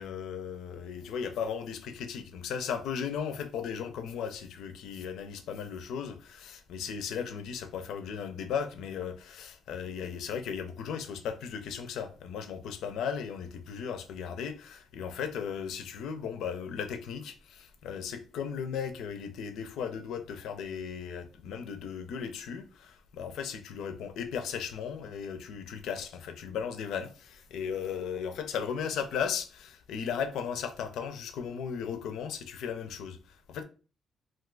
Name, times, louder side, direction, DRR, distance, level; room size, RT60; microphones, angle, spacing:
voice 1, 0.0-33.6, left 7 dB, 80° left, 0.5 m, -36 dB
2.5 x 2.4 x 3.7 m
cardioid pair, 90°, 0 cm